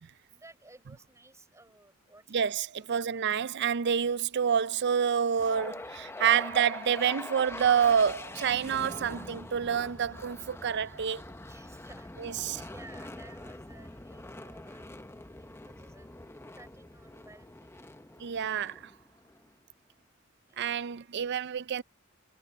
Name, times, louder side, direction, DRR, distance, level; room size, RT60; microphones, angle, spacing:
voice 1, 0.3-3.0 11.5-16.2 16.6-17.8 18.3-18.6 20.5-20.8, right 2 dB, 15° right, 5.5 m, -56 dB
voice 2, 2.3-11.2 12.2-12.6 18.2-18.7 20.6-21.8, right 8 dB, 55° right, 0.5 m, -28 dB
sound 1, 5.3-19.5, left 2 dB, 10° left, 0.8 m, -44 dB
head